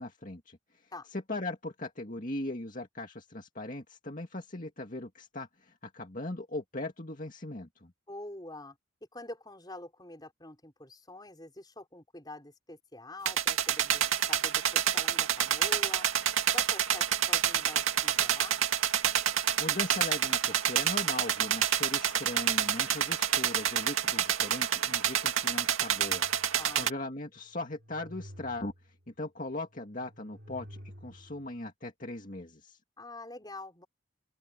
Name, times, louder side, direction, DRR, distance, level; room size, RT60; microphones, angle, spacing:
voice 1, 0.0-7.9 19.6-32.8, left 2 dB, 40° left, 2.2 m, -39 dB
voice 2, 8.1-8.8 9.1-16.1 16.5-18.6 26.6-26.9 33.0-33.9, left 2 dB, 20° left, 5.3 m, -46 dB
sound 1, 13.3-26.9, right 9 dB, 85° right, 2.2 m, -28 dB
sound 2, 26.1-27.0 27.4-29.1 29.6-31.5, equal, 55° right, 6.1 m, -51 dB
open air
head